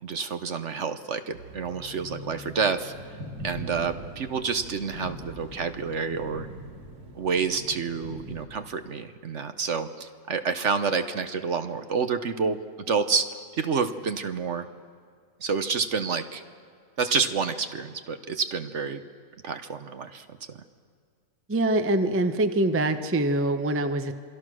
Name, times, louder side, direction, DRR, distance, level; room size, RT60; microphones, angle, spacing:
voice 1, 0.0-2.9 3.4-6.5 7.2-12.6 12.9-14.7 15.4-16.4 17.0-19.0 19.4-20.6, right 5 dB, 55° right, 9 dB, 1.1 m, -28 dB
sound 1, 1.3-8.5, equal, 75° right, 2.5 m, -42 dB
voice 2, 21.5-24.1, right 1 dB, 15° right, 8 dB, 0.6 m, -24 dB
27.0 x 23.5 x 6.3 m, 2.1 s
omnidirectional pair, 1.6 m